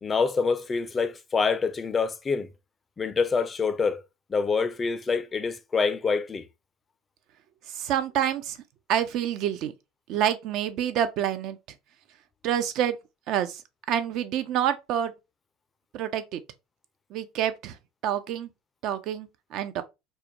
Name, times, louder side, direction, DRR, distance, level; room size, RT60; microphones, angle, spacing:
voice 1, 0.0-2.5 3.0-4.0 4.3-6.5, left 5 dB, 25° left, 0.3 m, -26 dB
voice 2, 7.7-8.6 8.9-9.7 10.1-11.6 12.4-13.0 13.3-13.6 13.9-15.1 15.9-16.4 17.1-17.8 18.0-18.5 18.8-19.8, right 10 dB, 55° right, 0.3 m, -27 dB
2.2 x 2.1 x 2.7 m
hypercardioid pair, 75°, 0 cm